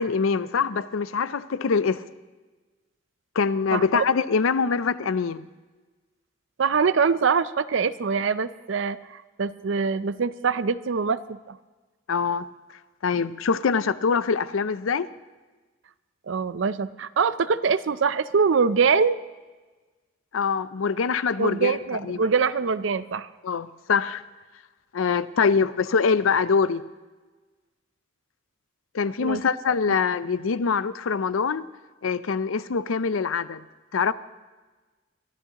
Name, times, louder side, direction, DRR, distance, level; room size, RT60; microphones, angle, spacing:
voice 1, 0.0-2.0 3.3-5.4 12.1-12.5 13.0-15.1 20.3-21.8 22.0-22.3 23.4-24.2 24.9-26.8 28.9-31.7 32.0-33.6 33.9-34.1, left 5 dB, 85° left, 0.5 m, -24 dB
voice 2, 3.7-4.0 6.6-11.6 16.3-19.2 21.4-23.3 29.2-29.4, right 5 dB, 70° right, 0.5 m, -24 dB
22.5 x 13.5 x 2.9 m
head